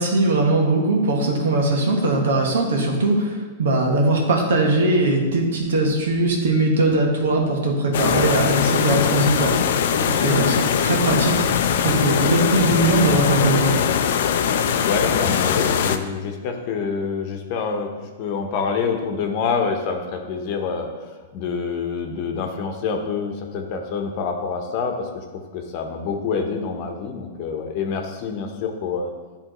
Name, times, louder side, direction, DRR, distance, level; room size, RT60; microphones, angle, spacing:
voice 1, 0.0-9.6 10.1-13.8, right 2 dB, 80° right, 0 dB, 1.4 m, -20 dB
sound 1, 7.9-16.0, left 8 dB, 70° left, 0.4 m, -21 dB
voice 2, 14.8-17.9 18.2-25.2 25.5-29.1, left 5 dB, 45° left, 4 dB, 0.9 m, -26 dB
9.8 x 3.5 x 3.1 m, 1.3 s
hypercardioid pair, 135°, 0 cm